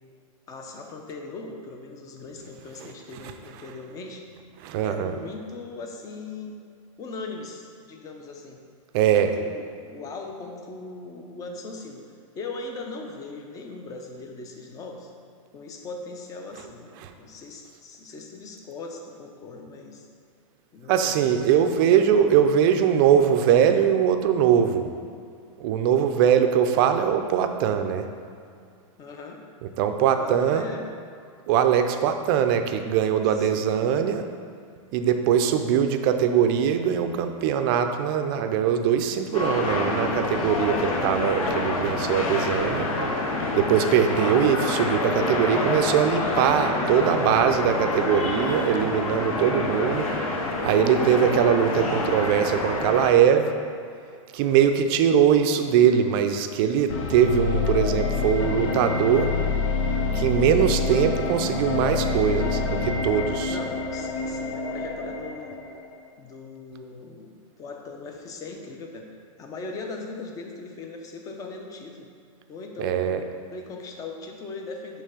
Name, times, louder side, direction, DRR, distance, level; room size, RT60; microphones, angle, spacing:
voice 1, 0.5-4.2 4.8-6.6 7.0-8.6 9.0-12.1 12.4-15.1 15.5-20.1 20.7-21.2 29.0-29.4 30.2-30.9 33.3-33.7 63.4-65.5 66.2-69.1 69.4-72.1 72.5-73.2 73.5-75.0, left 3 dB, 20° left, 3 dB, 0.6 m, -39 dB
voice 2, 4.6-5.1 8.9-9.3 17.0-17.1 20.9-24.9 25.6-28.1 29.6-30.6 31.5-34.3 34.9-42.9 43.5-50.1 50.6-53.5 54.3-59.3 60.1-63.5 72.8-73.2, right 8 dB, 40° right, 7 dB, 0.4 m, -21 dB
sound 1, 39.3-53.1, left 2 dB, 80° left, 1.0 m, -27 dB
sound 2, 56.9-65.9, left 4 dB, 65° left, 0.7 m, -27 dB
6.5 x 3.2 x 5.0 m, 2.4 s
supercardioid pair, 145°, 18 cm